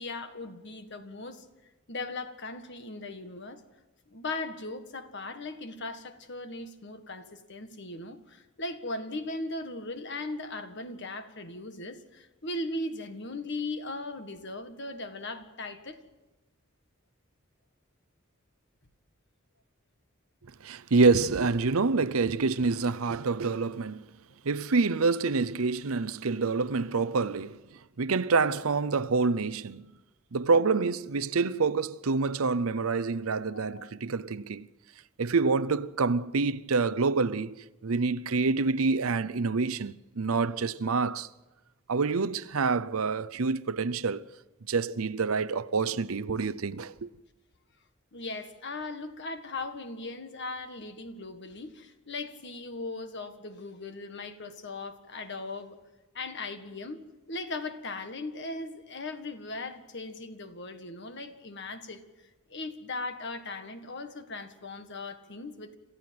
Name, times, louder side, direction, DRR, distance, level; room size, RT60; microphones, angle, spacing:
voice 1, 0.0-1.5 1.9-3.6 4.1-16.0 33.5-33.9 48.1-55.8 56.1-57.0 57.3-62.0 62.5-65.8, left 2 dB, 55° left, 1.8 m, -38 dB
voice 2, 20.6-24.1 24.4-29.9 30.3-34.7 35.2-41.3 41.9-44.3 44.7-47.1, right 4 dB, 85° right, 0.7 m, -27 dB
27.0 x 15.0 x 7.8 m
head